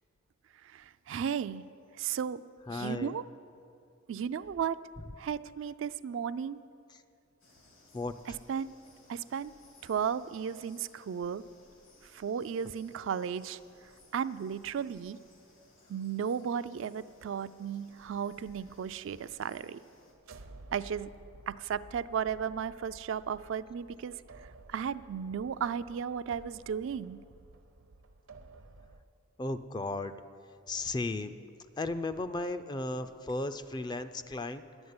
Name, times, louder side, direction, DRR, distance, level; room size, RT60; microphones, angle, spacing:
voice 1, 0.6-1.6 1.9-2.4 2.7-3.2 4.1-4.8 5.2-6.6 8.5-8.7 9.1-9.5 9.8-11.4 12.1-13.6 14.1-15.2 15.9-19.8 20.7-21.1 21.5-24.2 24.7-27.2, right 7 dB, 65° right, 13 dB, 0.3 m, -34 dB
voice 2, 2.7-3.1 6.9-7.0 7.9-8.4 29.4-30.1 30.7-31.3 31.8-34.9, left 2 dB, 20° left, 11 dB, 0.4 m, -35 dB
sound 1, 7.4-20.1, left 1 dB, 75° left, 2.2 m, -61 dB
sound 2, 20.1-29.0, right 2 dB, 80° right, 0.7 m, -54 dB
11.0 x 8.0 x 9.5 m, 2.6 s
head